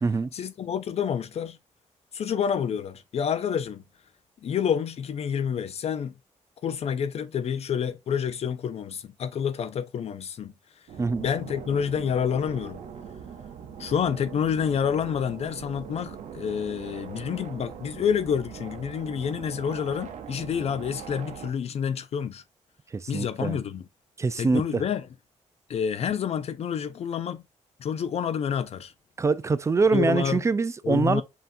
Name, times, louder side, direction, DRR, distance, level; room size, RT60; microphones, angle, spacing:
voice 1, 0.3-1.6 2.1-3.8 4.4-6.1 6.6-10.5 11.2-12.8 13.8-22.4 23.1-23.8 24.4-25.1 25.7-27.4 27.8-28.9 29.9-30.4 30.8-31.2, left 7 dB, 55° left, 0.4 m, -28 dB
sound 1, 10.9-21.5, right 7 dB, 75° right, 0.6 m, -41 dB
voice 2, 22.9-23.6 24.2-24.8 29.2-31.2, right 4 dB, 25° right, 0.3 m, -24 dB
5.5 x 2.8 x 2.5 m
cardioid pair, 90°, 12 cm